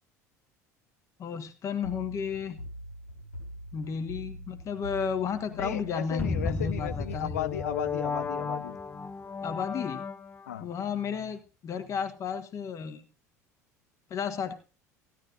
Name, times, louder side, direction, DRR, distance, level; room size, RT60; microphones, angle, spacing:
voice 1, 1.2-2.6 3.7-7.4 9.4-10.0 10.6-13.1 14.1-14.5, left 6 dB, 35° left, 8 dB, 1.8 m, -33 dB
sound 1, 1.8-8.5, equal, 85° left, 7.4 m, -43 dB
voice 2, 5.6-8.8 10.5-10.7, left 11 dB, 70° left, 15 dB, 0.5 m, -35 dB
sound 2, 6.2-10.6, left 4 dB, 20° left, 0.9 m, -34 dB
16.0 x 12.5 x 2.6 m, 0.32 s
figure-of-eight pair, 65°, 9 cm